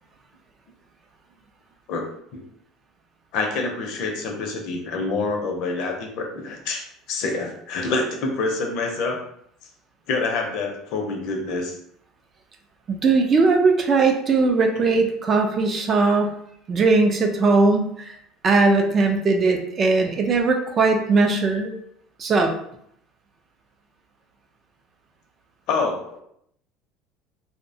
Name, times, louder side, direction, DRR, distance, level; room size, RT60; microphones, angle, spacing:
voice 1, 3.3-9.2 10.1-11.8 25.7-26.2, left 3 dB, 60° left, 3 dB, 0.5 m, -27 dB
voice 2, 12.9-16.4 16.7-18.1 18.4-21.8 22.2-22.5, right 3 dB, 30° right, 4 dB, 0.4 m, -19 dB
2.7 x 2.1 x 2.6 m, 0.71 s
cardioid pair, 135°, 0 cm